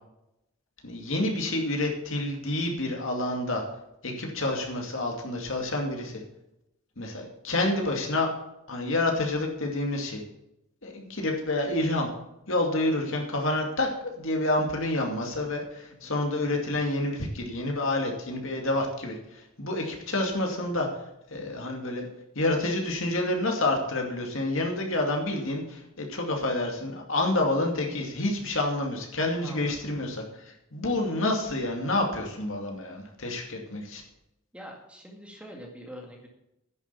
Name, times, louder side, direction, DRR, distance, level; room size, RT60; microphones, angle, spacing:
voice 1, 0.8-3.6 4.0-6.2 7.0-8.3 8.7-10.2 10.8-12.1 12.5-22.1 22.4-34.0, left 2 dB, 60° left, 1 dB, 2.4 m, -28 dB
voice 2, 29.4-29.8 34.5-36.3, equal, 5° right, 0 dB, 1.9 m, -44 dB
10.5 x 7.5 x 6.9 m, 0.85 s
head